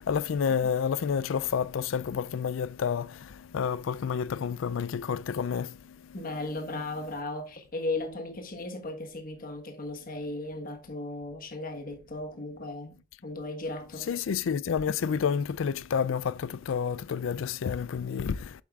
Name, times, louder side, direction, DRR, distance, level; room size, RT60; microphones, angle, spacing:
voice 1, 0.1-6.2 14.0-18.6, left 7 dB, 70° left, 0.4 m, -29 dB
voice 2, 6.1-12.9 13.2-14.1, left 2 dB, 45° left, 1.4 m, -36 dB
8.1 x 7.2 x 2.4 m
head